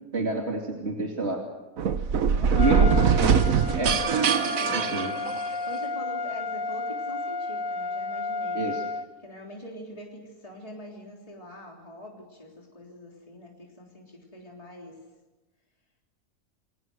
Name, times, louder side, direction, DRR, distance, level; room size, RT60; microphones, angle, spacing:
voice 1, 0.1-1.4 2.6-3.0 3.8-4.0 4.7-5.1 8.5-8.8, right 2 dB, 50° right, 0 dB, 2.8 m, -28 dB
sound 1, 1.8-5.8, right 6 dB, 75° right, 1.5 m, -23 dB
voice 2, 2.2-2.9 3.7-5.1 5.4-8.6 9.2-15.0, equal, 25° left, -1 dB, 3.6 m, -43 dB
Trumpet, 2.5-9.1, left 3 dB, 70° left, 1.4 m, -32 dB
29.5 x 23.0 x 6.4 m, 1.1 s
omnidirectional pair, 1.5 m